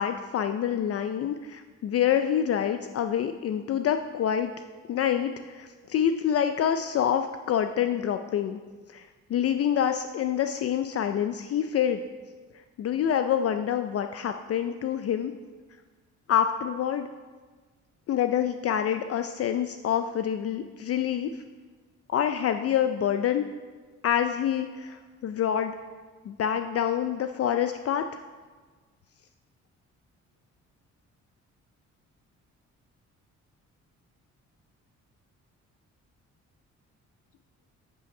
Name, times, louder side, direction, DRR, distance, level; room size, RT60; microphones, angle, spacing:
voice 1, 0.0-4.5 4.9-8.6 8.9-9.0 9.3-12.0 12.8-15.3 16.3-17.1 18.1-21.3 22.1-23.5 24.0-25.7 26.2-28.2, left 9 dB, 50° left, 8 dB, 0.4 m, -26 dB
8.4 x 5.5 x 5.4 m, 1.4 s
cardioid pair, 90°, 30 cm